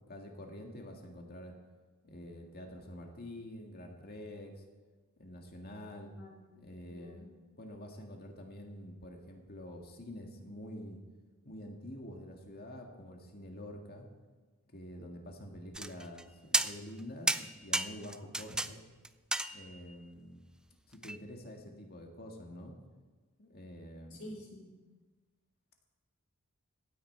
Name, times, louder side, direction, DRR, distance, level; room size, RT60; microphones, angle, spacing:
voice 1, 0.1-1.5 2.0-4.6 5.2-6.1 6.6-11.0 11.4-14.1 14.7-18.8 19.5-20.4 20.9-22.7 23.4-24.2, left 1 dB, 45° left, 2 dB, 1.8 m, -47 dB
voice 2, 6.2-7.2 24.1-24.7, left 1 dB, 75° left, -2 dB, 4.4 m, -49 dB
sound 1, 15.7-16.2 16.5-17.0 17.3-18.7 19.0-19.9 21.0-21.2, right 1 dB, 5° right, 0.3 m, -32 dB
16.0 x 9.8 x 4.5 m, 1.3 s
head